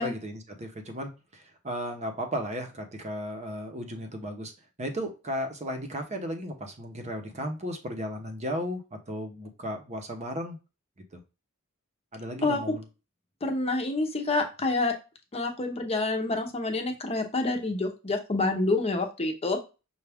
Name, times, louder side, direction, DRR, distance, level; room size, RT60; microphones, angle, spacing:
voice 1, 0.0-4.5 4.8-10.6 11.1-11.2 12.1-12.8, equal, 30° right, 0.8 m, -35 dB
voice 2, 12.4-12.8 13.4-14.9 15.3-19.6, left 2 dB, 30° left, 0.8 m, -27 dB
5.7 x 2.4 x 3.4 m
head